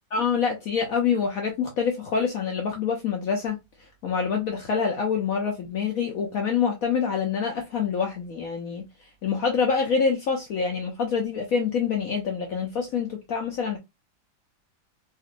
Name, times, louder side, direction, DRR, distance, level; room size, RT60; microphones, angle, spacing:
voice 1, 0.1-3.6 4.0-13.8, left 6 dB, 65° left, 1.0 m, -26 dB
3.9 x 2.5 x 2.5 m
omnidirectional pair, 1.9 m